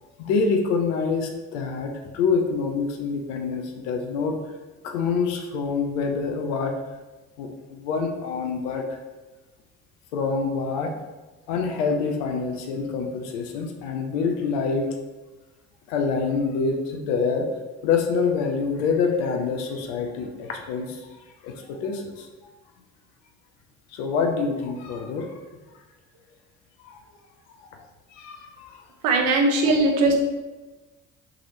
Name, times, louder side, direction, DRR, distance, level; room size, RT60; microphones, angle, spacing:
voice 1, 0.2-4.4 4.8-6.8 7.4-9.0 10.1-10.9 11.5-14.9 15.9-17.5 17.8-21.2 21.4-22.3 23.9-25.4 26.8-27.0 27.6-27.8 28.1-28.8, left 5 dB, 85° left, 3 dB, 0.6 m, -26 dB
voice 2, 29.0-30.1, right 2 dB, 80° right, 2 dB, 0.8 m, -19 dB
4.7 x 3.1 x 3.1 m, 1.2 s
hypercardioid pair, 50°, 36 cm